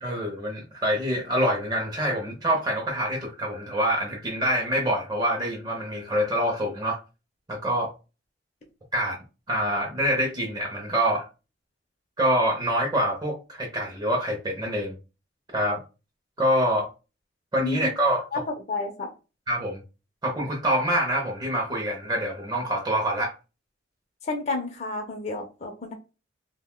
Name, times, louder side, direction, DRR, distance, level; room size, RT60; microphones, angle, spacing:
voice 1, 0.0-7.0 7.5-7.9 8.9-9.2 9.5-11.3 12.2-14.9 15.5-15.8 16.4-16.9 17.5-18.4 19.5-19.8 20.2-23.3, equal, 20° right, 0.5 m, -26 dB
voice 2, 18.7-19.1 24.2-25.9, left 3 dB, 35° left, 0.5 m, -30 dB
2.5 x 2.1 x 3.6 m
head